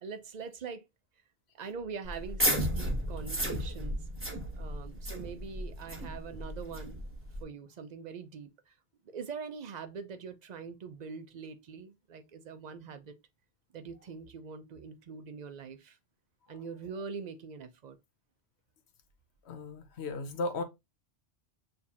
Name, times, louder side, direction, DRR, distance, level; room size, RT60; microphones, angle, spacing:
voice 1, 0.0-0.8 1.5-4.0 4.2-7.1 7.4-8.7 9.1-13.2 13.7-16.0 16.5-18.0, right 5 dB, 50° right, 0.6 m, -43 dB
sound 1, 2.1-7.4, equal, 10° right, 1.1 m, -34 dB
voice 2, 19.5-20.6, left 2 dB, 70° left, 1.0 m, -35 dB
6.6 x 2.4 x 2.8 m
omnidirectional pair, 1.2 m